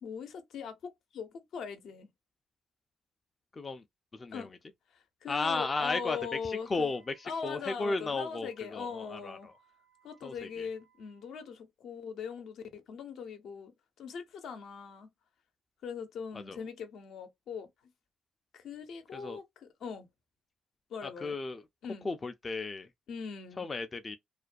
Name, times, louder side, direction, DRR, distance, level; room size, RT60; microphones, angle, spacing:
voice 1, 0.0-2.1 4.3-4.5 4.9-6.9 7.2-9.5 10.0-15.1 15.8-17.7 18.5-20.1 20.9-21.4 21.8-22.1 23.1-23.7, left 6 dB, 75° left, 0.6 m, -41 dB
voice 2, 3.5-3.8 4.1-4.5 5.3-9.5 10.2-10.7 16.3-16.6 19.1-19.4 21.0-21.6 22.0-22.9 23.6-24.2, left 3 dB, 30° left, 0.3 m, -35 dB
Wind instrument woodwind instrument, 5.3-11.5, right 9 dB, 85° right, 0.8 m, -57 dB
2.4 x 2.2 x 2.4 m
cardioid pair, 90°, 0 cm